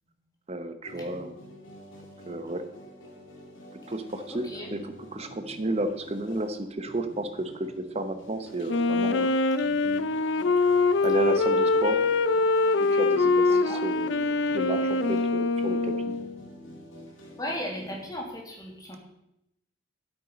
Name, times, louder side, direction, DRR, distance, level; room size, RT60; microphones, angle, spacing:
voice 1, 0.5-1.3 2.3-2.6 3.9-9.3 10.6-12.0 12.8-14.3 14.5-16.1, right 1 dB, 30° right, 8 dB, 0.8 m, -32 dB
sound 1, 0.8-18.3, equal, 80° left, 2.2 m, -47 dB
voice 2, 4.3-4.7 13.5-13.9 17.4-19.0, equal, 20° left, 0 dB, 1.9 m, -36 dB
Wind instrument woodwind instrument, 8.7-16.3, left 3 dB, 65° left, 0.5 m, -24 dB
9.8 x 8.3 x 5.1 m, 0.83 s
head